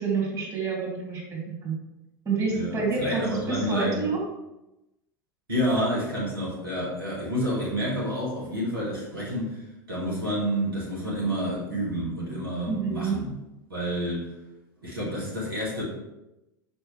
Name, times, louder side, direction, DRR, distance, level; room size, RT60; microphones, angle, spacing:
voice 1, 0.0-1.7 2.2-4.2 12.7-13.2, right 4 dB, 25° right, -3 dB, 2.4 m, -28 dB
voice 2, 2.5-4.0 5.5-9.6 9.9-13.3 13.7-14.3 14.8-15.8, equal, 85° right, -6 dB, 2.1 m, -29 dB
6.3 x 5.4 x 3.3 m, 0.96 s
figure-of-eight pair, 85°, 12 cm